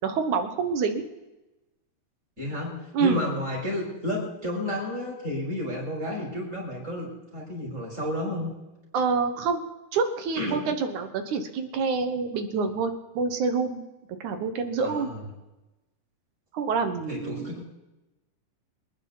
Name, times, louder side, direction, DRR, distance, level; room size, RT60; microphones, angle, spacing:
voice 1, 0.0-1.1 2.9-3.2 8.9-9.6 9.9-13.8 14.2-15.1 16.5-17.5, right 5 dB, 65° right, 7 dB, 2.6 m, -27 dB
voice 2, 2.4-8.5 10.4-10.6 14.8-15.3 17.1-17.6, left 1 dB, 20° right, -3 dB, 6.3 m, -31 dB
25.5 x 10.5 x 4.1 m, 1.0 s
omnidirectional pair, 3.9 m